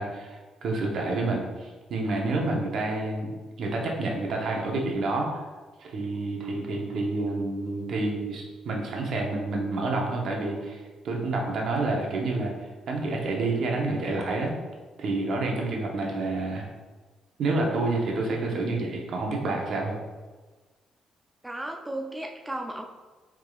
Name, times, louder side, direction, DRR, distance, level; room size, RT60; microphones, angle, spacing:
voice 1, 0.0-5.4 5.8-12.5 12.9-14.5 15.0-16.6 17.4-20.0, right 2 dB, 65° right, 0 dB, 0.9 m, -29 dB
voice 2, 21.4-22.8, right 1 dB, 10° right, 2 dB, 0.4 m, -34 dB
4.8 x 3.6 x 2.4 m, 1.3 s
cardioid pair, 90°, 0 cm